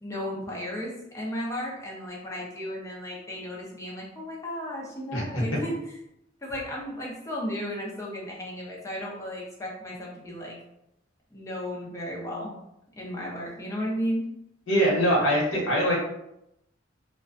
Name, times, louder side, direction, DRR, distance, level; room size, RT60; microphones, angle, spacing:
voice 1, 0.0-5.9 6.4-10.6 11.3-12.5 13.0-14.3, equal, 15° left, -4 dB, 0.5 m, -34 dB
voice 2, 5.1-5.4 14.7-16.0, equal, 75° left, -3 dB, 0.9 m, -23 dB
2.3 x 2.2 x 2.4 m, 0.82 s
head